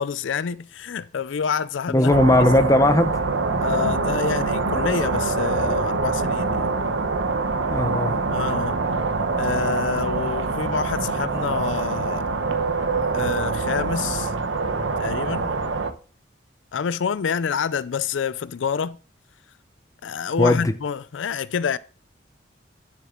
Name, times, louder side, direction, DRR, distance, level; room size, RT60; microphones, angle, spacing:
voice 1, 0.0-2.1 3.6-6.7 8.3-8.8 9.2-12.3 13.1-14.3 15.0-15.5 16.7-19.0 20.0-21.8, left 6 dB, 85° left, 0.4 m, -27 dB
voice 2, 1.9-3.1 7.7-8.2 20.4-20.6, left 1 dB, 15° left, 0.7 m, -17 dB
sound 1, 2.1-15.9, right 3 dB, 90° right, 0.9 m, -24 dB
10.0 x 7.3 x 3.7 m
head